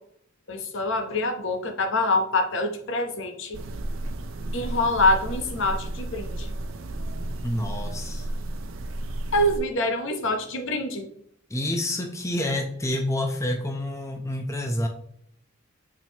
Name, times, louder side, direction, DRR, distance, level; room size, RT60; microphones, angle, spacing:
voice 1, 0.5-3.6 4.5-6.5 9.3-11.0, left 2 dB, 65° left, 6 dB, 0.9 m, -25 dB
sound 1, 3.5-9.6, right 1 dB, 75° right, 0.6 m, -33 dB
voice 2, 7.4-8.3 11.5-14.9, left 1 dB, 15° left, 3 dB, 0.7 m, -28 dB
7.4 x 4.5 x 2.9 m, 0.68 s
head